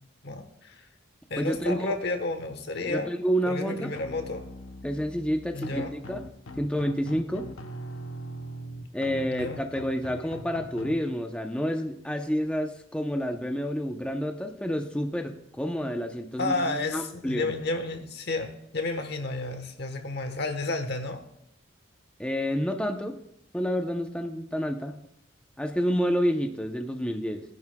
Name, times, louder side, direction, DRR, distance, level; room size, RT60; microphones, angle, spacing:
voice 1, 0.2-0.8 1.3-3.2 3.5-4.4 5.5-5.9 9.3-9.6 10.2-10.3 16.4-21.2, left 2 dB, 55° left, 7 dB, 1.2 m, -31 dB
voice 2, 1.4-1.9 2.8-3.9 4.8-6.2 6.6-7.5 8.9-17.5 22.2-23.2 23.5-25.1 25.6-27.4, equal, 5° left, 4 dB, 0.6 m, -29 dB
sound 1, 3.9-10.9, equal, 80° left, 0.9 m, -41 dB
18.5 x 10.5 x 2.3 m, 0.77 s
head